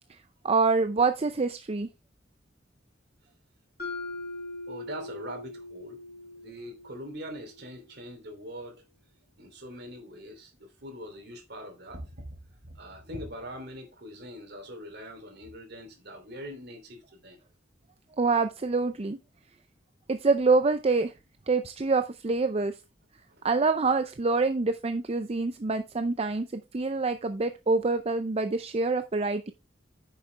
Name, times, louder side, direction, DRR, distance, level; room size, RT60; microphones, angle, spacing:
voice 1, 0.4-1.9 18.2-19.2 20.1-21.1 21.5-22.7 23.4-29.5, right 3 dB, 35° right, 0.5 m, -26 dB
Mallet percussion, 3.8-7.8, left 2 dB, 55° left, 2.3 m, -41 dB
voice 2, 4.7-6.0 6.4-8.8 9.4-12.3 12.6-17.4 23.3-23.5, equal, 60° right, 2.9 m, -42 dB
9.6 x 6.8 x 3.3 m
head